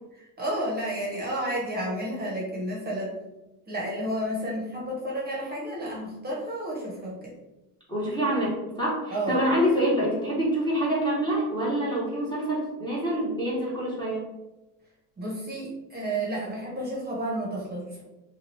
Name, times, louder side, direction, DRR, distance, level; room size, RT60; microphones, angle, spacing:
voice 1, 0.2-3.2 3.7-7.3 9.1-9.4 15.2-18.0, right 1 dB, 20° right, -4 dB, 0.8 m, -31 dB
voice 2, 7.9-14.2, equal, 10° left, -7 dB, 0.8 m, -26 dB
2.9 x 2.3 x 3.1 m, 1.0 s
supercardioid pair, 105°, 49 cm